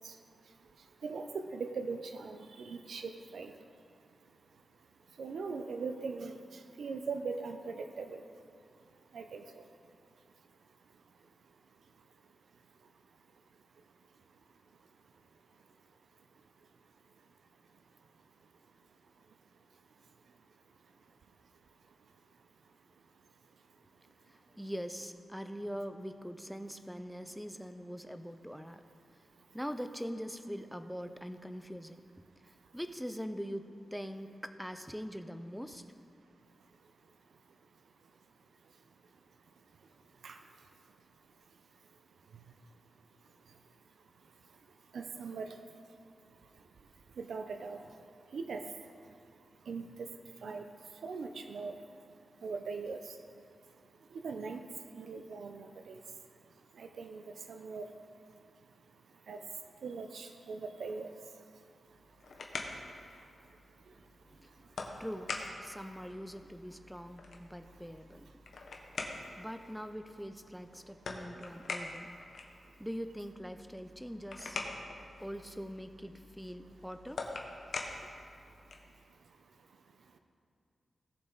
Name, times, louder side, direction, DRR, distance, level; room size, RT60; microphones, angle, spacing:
voice 1, 1.0-3.5 5.2-6.4 6.8-8.2 9.1-9.4 40.2-40.4 44.9-45.5 47.2-47.8 48.3-48.6 49.7-50.1 50.4-50.6 51.0-51.7 52.4-53.0 54.2-54.6 54.9-56.0 56.8-57.2 57.5-57.9 59.3-59.4 59.8-61.1, right 4 dB, 80° right, 6 dB, 0.6 m, -40 dB
voice 2, 24.3-28.8 29.5-32.0 32.4-35.9 64.2-64.5 65.0-68.3 69.4-72.1 72.8-74.6 75.2-77.3, equal, ahead, 9 dB, 0.5 m, -43 dB
sound 1, 61.9-79.0, left 3 dB, 75° left, 1.1 m, -45 dB
18.5 x 6.9 x 4.0 m, 2.5 s
wide cardioid pair, 170°, 0 cm